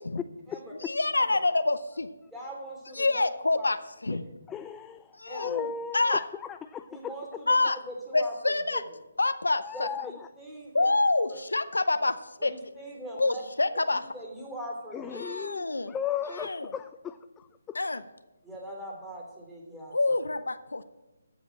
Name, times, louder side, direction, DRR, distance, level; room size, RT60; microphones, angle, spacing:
voice 1, 0.8-2.1 2.9-3.8 4.0-4.2 5.1-6.2 7.5-7.8 8.1-8.8 9.2-9.9 10.7-12.5 13.2-14.1 15.1-15.9 16.4-16.7 17.7-18.0 19.9-20.8, left 2 dB, 80° left, 12 dB, 0.7 m, -27 dB
voice 2, 2.3-3.3 3.5-3.7 5.2-5.5 6.9-8.8 9.7-10.9 11.3-11.4 12.4-13.4 13.9-15.2 18.4-20.1, right 1 dB, 5° right, -4 dB, 3.0 m, -41 dB
voice 3, 4.5-7.2 9.6-10.3 14.9-17.8, left 8 dB, 10° left, 9 dB, 0.3 m, -36 dB
14.5 x 5.1 x 7.3 m, 1.0 s
figure-of-eight pair, 145°, 0 cm